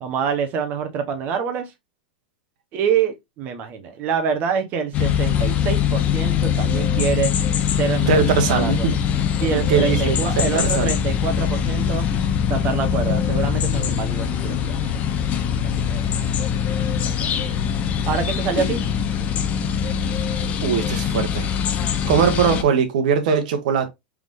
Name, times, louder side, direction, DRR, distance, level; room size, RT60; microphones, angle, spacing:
voice 1, 0.0-1.7 2.7-7.3 7.8-8.2 8.5-9.0 9.4-12.1 12.5-14.9 15.6-16.5 17.0-17.5 18.1-18.9, right 6 dB, 40° right, 1.1 m, -26 dB
sound 1, 4.9-22.6, left 8 dB, 30° left, 0.8 m, -22 dB
voice 2, 8.1-8.8 9.5-10.2 10.5-10.9 20.6-21.5 22.1-23.9, right 6 dB, 65° right, 1.4 m, -20 dB
4.7 x 3.7 x 2.6 m
supercardioid pair, 130°, 5 cm